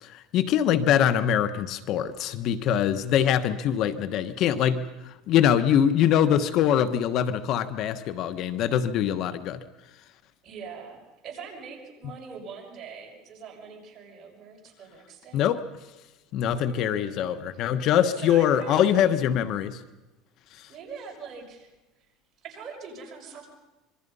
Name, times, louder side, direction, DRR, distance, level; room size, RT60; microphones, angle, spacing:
voice 1, 0.0-9.6 15.3-15.7 16.3-19.8 20.6-20.7, left 9 dB, 50° left, 12 dB, 1.2 m, -23 dB
voice 2, 10.4-15.4 16.4-19.2 20.7-21.7 22.4-23.5, right 5 dB, 35° right, 1 dB, 6.2 m, -43 dB
26.0 x 23.0 x 5.5 m, 1.1 s
cardioid pair, 140°, 0 cm